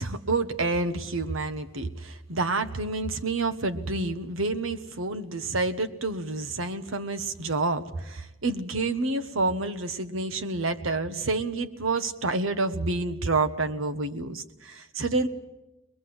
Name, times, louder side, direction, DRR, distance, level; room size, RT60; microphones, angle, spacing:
voice 1, 0.0-15.3, right 3 dB, 90° right, 9 dB, 1.3 m, -28 dB
22.0 x 21.5 x 7.9 m, 0.97 s
head